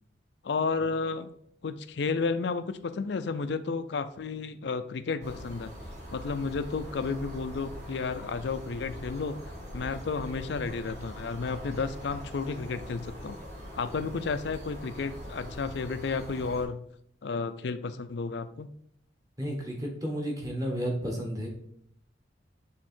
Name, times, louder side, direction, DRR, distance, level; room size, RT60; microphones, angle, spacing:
voice 1, 0.4-1.3 1.6-5.7 6.1-13.4 13.7-16.9 17.2-18.7, left 4 dB, 65° left, 11 dB, 0.4 m, -32 dB
sound 1, 5.2-16.6, equal, 40° right, 1.7 m, -43 dB
voice 2, 19.4-21.5, equal, 20° right, -1 dB, 1.2 m, -32 dB
6.4 x 3.5 x 4.4 m, 0.69 s
head